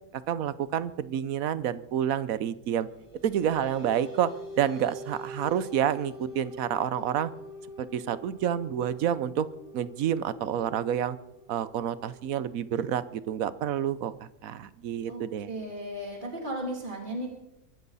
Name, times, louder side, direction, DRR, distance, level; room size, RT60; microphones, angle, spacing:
voice 1, 0.1-2.9 3.2-7.3 7.9-9.5 9.7-11.2 11.5-14.1 14.4-15.5, right 9 dB, 75° right, 16 dB, 1.2 m, -29 dB
sound 1, 2.8-13.8, equal, 20° left, 2.3 m, -45 dB
voice 2, 15.1-17.3, right 1 dB, 35° right, 0 dB, 3.1 m, -35 dB
23.5 x 12.5 x 4.1 m, 0.86 s
omnidirectional pair, 1.5 m